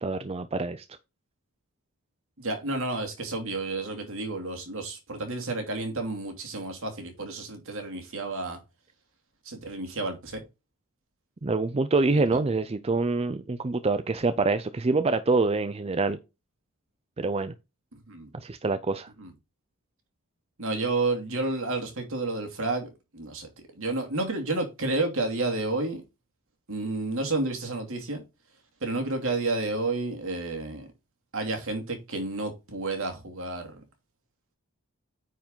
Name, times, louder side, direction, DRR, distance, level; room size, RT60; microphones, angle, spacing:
voice 1, 0.0-0.8 11.4-16.2 17.2-17.5 18.3-19.1, right 3 dB, 25° right, 0.5 m, -26 dB
voice 2, 2.4-8.6 9.5-10.4 12.1-12.4 18.1-18.3 19.2-19.3 20.6-23.5 23.7-26.0 26.7-28.2 28.8-30.9 31.3-33.8, right 2 dB, 65° right, 2.6 m, -31 dB
9.3 x 4.7 x 3.8 m
head